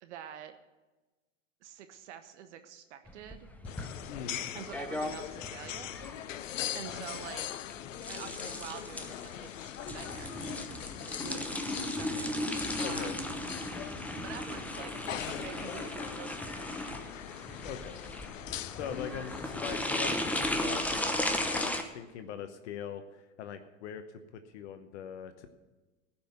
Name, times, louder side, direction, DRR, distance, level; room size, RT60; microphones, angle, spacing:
voice 1, 0.0-0.5 1.6-3.5 4.5-5.9 6.7-7.5 8.1-9.5 9.8-10.4 10.7-13.2 14.2-14.9 15.3-16.7, right 9 dB, 60° right, 8 dB, 1.0 m, -47 dB
sound 1, 3.1-21.8, left 1 dB, 5° left, 0.9 m, -36 dB
sound 2, 3.6-21.7, left 11 dB, 80° left, 0.6 m, -42 dB
voice 2, 4.1-4.4 12.8-13.2 17.6-18.0 18.7-24.0 24.3-25.5, left 8 dB, 60° left, 8 dB, 1.0 m, -42 dB
15.5 x 5.7 x 7.9 m, 1.2 s
hypercardioid pair, 90°, 38 cm